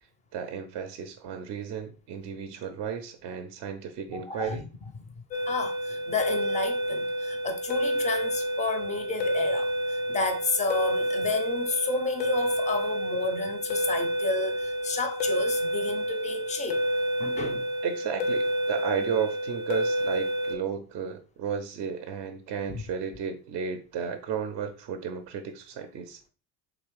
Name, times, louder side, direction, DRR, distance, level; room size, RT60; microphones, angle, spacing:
voice 1, 0.3-4.7 17.8-26.2, right 7 dB, 35° right, 0.5 m, -33 dB
voice 2, 4.1-4.6 5.5-16.8 17.2-17.6 22.7-22.8, left 3 dB, 15° left, 0.5 m, -31 dB
sound 1, 5.3-20.5, equal, 90° left, 0.8 m, -29 dB
3.6 x 2.9 x 3.2 m
figure-of-eight pair, 65°, 49 cm